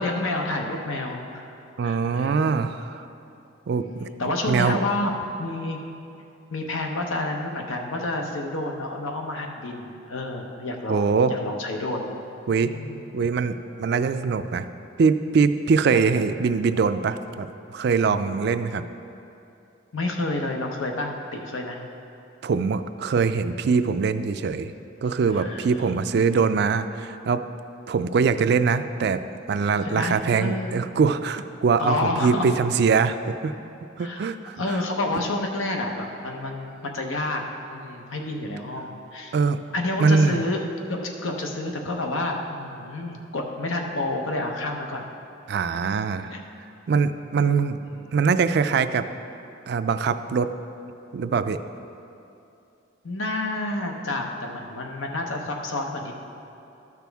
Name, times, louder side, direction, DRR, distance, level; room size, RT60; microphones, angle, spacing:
voice 1, 0.0-1.4 1.8-2.5 3.7-5.8 6.5-12.2 12.6-13.1 19.9-21.8 25.3-26.0 29.8-30.7 31.8-32.5 34.0-34.3 34.6-37.4 37.7-39.3 39.7-40.6 40.9-45.1 45.7-45.8 46.3-46.4 47.8-48.0 53.0-56.2, left 2 dB, 90° left, 2 dB, 0.9 m, -29 dB
voice 2, 1.8-3.0 3.7-4.1 4.5-4.8 10.9-11.4 12.5-12.7 13.1-14.7 15.0-17.5 17.7-18.9 22.4-24.7 25.0-27.4 27.9-29.2 29.5-33.5 34.0-34.6 39.3-39.6 40.0-40.4 45.5-46.3 46.9-47.8 48.1-49.1 49.7-50.5 51.1-51.6, right 5 dB, 55° right, 10 dB, 0.3 m, -22 dB
13.0 x 6.0 x 3.5 m, 2.7 s
head